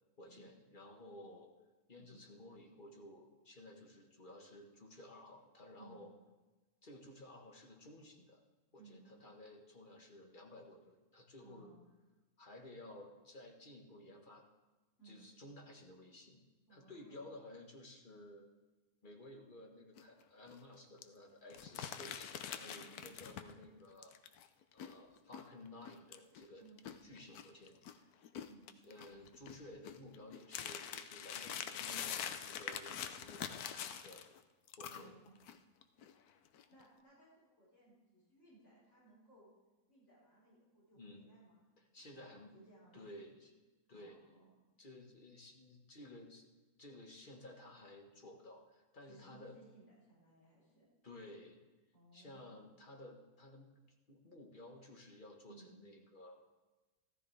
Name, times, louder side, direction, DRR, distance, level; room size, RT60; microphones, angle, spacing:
voice 1, 0.2-1.5 1.9-6.1 6.8-8.4 8.7-11.7 12.4-14.5 15.0-16.4 16.7-18.5 19.0-24.2 24.7-26.7 27.0-28.1 28.8-34.2 34.8-35.2 40.9-41.3 41.8-42.5 42.9-43.5 43.9-44.2 44.8-46.4 46.8-49.6 51.0-51.6 52.1-53.7 54.1-56.3, left 1 dB, 35° left, 1 dB, 1.6 m, -55 dB
voice 2, 11.4-11.9 15.0-15.2 16.7-17.2 22.6-23.6 26.6-26.8 28.5-28.7 31.6-32.5 34.8-35.4 36.7-39.5 39.9-41.6 42.0-42.2 42.5-43.0 43.9-44.5 49.0-50.9 51.9-52.7 55.5-55.7, right 3 dB, 50° left, -7 dB, 5.3 m, -63 dB
sound 1, 20.0-20.2 20.5-20.6 21.0-21.1 21.5-23.7 24.0-27.9 28.2-34.4 34.7-35.6 35.8-36.1 36.5-36.8, left 9 dB, 80° left, 1.2 m, -45 dB
14.5 x 14.0 x 3.4 m, 1.2 s
omnidirectional pair, 1.6 m